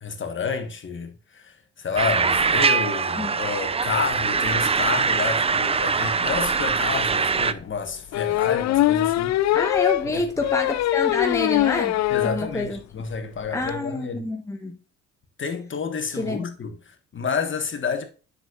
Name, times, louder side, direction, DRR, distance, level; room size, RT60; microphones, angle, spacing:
voice 1, 0.0-9.4 10.1-10.5 12.1-14.3 15.4-18.0, left 5 dB, 40° left, 1.5 m, -30 dB
sound 1, 2.0-7.5, right 5 dB, 20° right, 0.4 m, -23 dB
sound 2, 6.8-6.9 8.1-12.4 12.8-12.9 13.1-13.2 13.4-13.7, left 14 dB, 65° left, 0.5 m, -22 dB
voice 2, 9.5-12.8 13.5-14.8 16.2-16.4, left 2 dB, 10° left, 1.0 m, -27 dB
7.9 x 6.4 x 2.4 m
cardioid pair, 90°, 30 cm